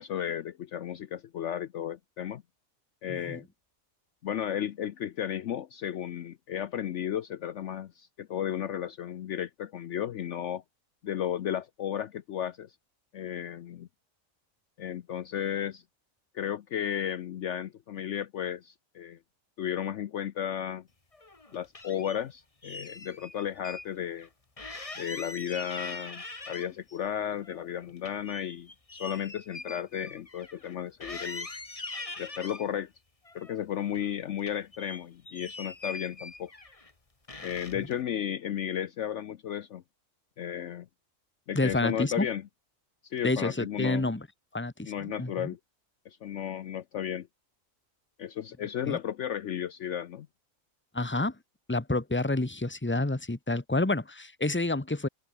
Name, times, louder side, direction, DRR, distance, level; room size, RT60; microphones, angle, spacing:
voice 1, 0.0-2.4 3.0-3.5 4.2-10.6 11.0-12.7 13.1-13.9 14.8-15.8 16.3-19.2 19.6-20.8 21.5-24.3 25.0-28.7 29.0-31.5 32.2-32.9 33.3-36.5 37.4-39.8 40.4-40.9 41.5-42.4 43.0-44.1 44.8-45.6 46.1-47.3 48.2-50.3, left 10 dB, 65° left, 1.0 m, -34 dB
voice 2, 3.1-3.4 41.5-42.3 43.2-44.3 44.5-45.5 48.9-49.0 50.9-51.3 51.7-55.1, left 2 dB, 10° left, 1.4 m, -29 dB
sound 1, 21.1-22.2 22.6-23.9 24.2-24.3 24.6-27.0 27.3-30.7 31.0-32.7 33.3-34.1 34.4-36.9 37.3-37.9, left 3 dB, 25° left, 1.9 m, -42 dB
open air
omnidirectional pair, 1.4 m